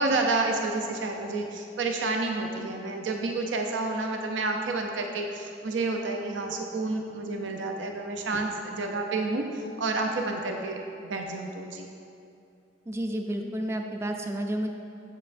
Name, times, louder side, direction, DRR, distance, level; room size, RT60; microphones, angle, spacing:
voice 1, 0.0-9.4 9.8-11.9, right 3 dB, 75° right, 3 dB, 0.5 m, -29 dB
voice 2, 12.9-14.7, right 1 dB, 15° right, 4 dB, 0.3 m, -31 dB
7.4 x 7.4 x 2.5 m, 2.6 s
head